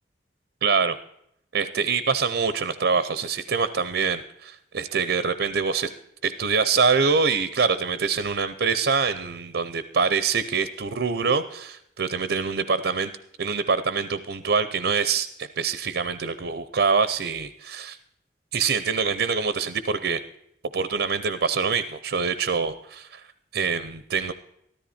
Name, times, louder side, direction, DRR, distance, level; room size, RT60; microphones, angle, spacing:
voice 1, 0.6-1.0 1.5-5.9 6.2-13.1 13.4-18.0 18.5-20.2 20.7-23.2 23.5-24.3, right 5 dB, 75° right, 13 dB, 0.7 m, -25 dB
13.5 x 13.0 x 4.3 m, 0.75 s
head